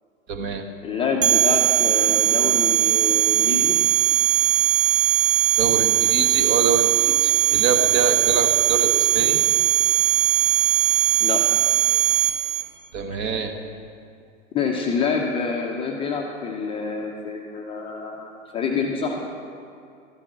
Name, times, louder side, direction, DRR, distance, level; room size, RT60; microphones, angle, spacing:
voice 1, 0.3-0.6 5.6-9.4 12.9-13.5, right 4 dB, 30° right, 5 dB, 1.3 m, -25 dB
voice 2, 0.8-3.8 11.2-11.4 14.5-19.2, left 5 dB, 15° left, 0 dB, 0.8 m, -27 dB
sound 1, 1.2-12.6, right 12 dB, 50° right, 1.5 m, -19 dB
13.5 x 8.8 x 7.4 m, 2.5 s
hypercardioid pair, 135°, 40 cm